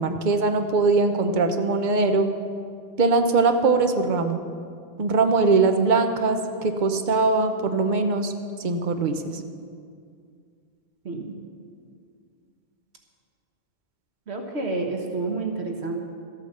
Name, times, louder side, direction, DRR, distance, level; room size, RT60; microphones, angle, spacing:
voice 1, 0.0-2.3 3.0-4.4 5.0-8.3 8.6-9.4, right 3 dB, 50° right, 6 dB, 0.9 m, -21 dB
voice 2, 11.0-11.4 14.3-16.0, right 3 dB, 85° right, 2 dB, 1.5 m, -29 dB
13.5 x 8.5 x 6.6 m, 2.3 s
omnidirectional pair, 1.1 m